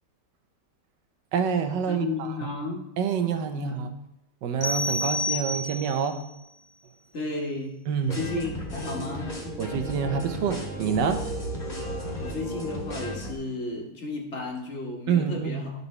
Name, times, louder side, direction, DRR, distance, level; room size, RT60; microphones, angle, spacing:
voice 1, 1.3-2.5 3.0-3.9 4.4-6.2 7.9-8.2 9.6-11.2 15.1-15.6, right 7 dB, 90° right, 7 dB, 1.4 m, -27 dB
voice 2, 1.9-2.8 3.5-3.8 7.1-7.8 8.0-9.3 12.2-15.7, left 3 dB, 45° left, 0 dB, 1.6 m, -33 dB
sound 1, 4.6-6.1, left 1 dB, 65° left, 1.5 m, -29 dB
sound 2, 8.1-13.4, equal, 25° left, 1.6 m, -34 dB
11.5 x 5.4 x 3.2 m, 0.81 s
omnidirectional pair, 1.8 m